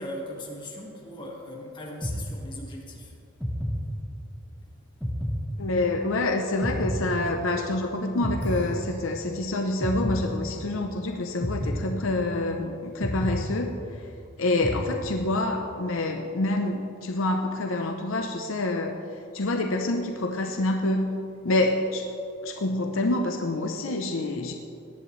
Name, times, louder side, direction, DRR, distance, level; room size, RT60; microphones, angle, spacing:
voice 1, 0.0-3.1, left 1 dB, 20° left, -2 dB, 1.7 m, -39 dB
sound 1, 2.0-2.9 3.4-4.5 5.0-6.2 6.6-7.8 8.2-9.4 9.8-10.9 11.4-12.6 13.0-14.2 14.6-15.5, equal, 5° left, 0.9 m, -31 dB
voice 2, 5.6-14.0 14.4-19.0 19.3-21.1 21.4-22.1 22.4-24.5, left 2 dB, 65° left, 3 dB, 0.7 m, -27 dB
17.5 x 10.5 x 3.2 m, 2.5 s
head